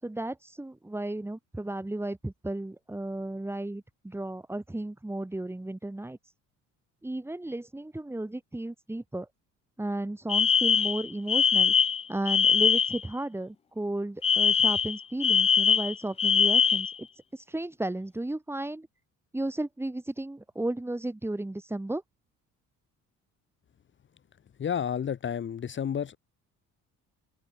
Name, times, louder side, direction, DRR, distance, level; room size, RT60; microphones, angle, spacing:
voice 1, 0.0-6.2 7.0-9.3 9.8-11.7 12.1-17.1 17.3-18.9 19.3-22.0, right 1 dB, 5° right, 5.3 m, -34 dB
Alarm, 10.3-13.0 14.2-17.0, left 7 dB, 20° left, 0.4 m, -23 dB
voice 2, 24.6-26.2, left 8 dB, 35° left, 2.4 m, -31 dB
open air
cardioid pair, 140°, 31 cm